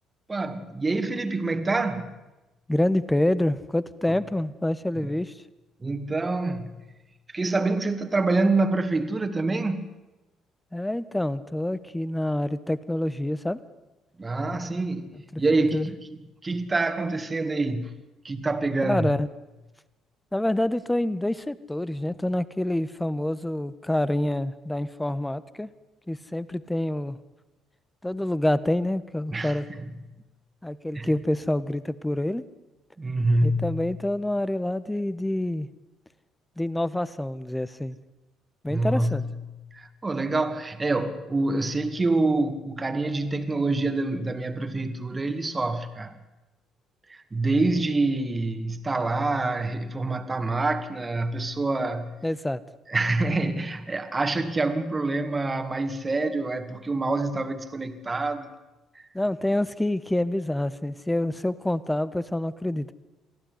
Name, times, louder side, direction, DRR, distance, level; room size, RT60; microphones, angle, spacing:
voice 1, 0.3-2.1 4.1-4.2 5.0-5.1 5.8-6.8 7.3-9.9 14.2-16.0 16.4-17.9 18.2-19.1 29.3-29.6 30.9-31.1 33.0-33.8 38.7-39.3 39.7-46.1 47.1-52.2 52.9-58.5 58.9-59.1, right 2 dB, 25° right, 2.3 m, -26 dB
voice 2, 2.7-5.4 10.7-13.6 15.3-15.4 15.7-15.9 18.8-19.3 20.3-25.7 26.1-27.2 28.0-29.6 30.6-32.4 33.4-35.7 36.6-38.0 38.6-39.2 52.2-52.6 59.1-62.9, left 1 dB, 10° left, 1.4 m, -27 dB
24.0 x 15.5 x 9.8 m
hypercardioid pair, 50°, 0 cm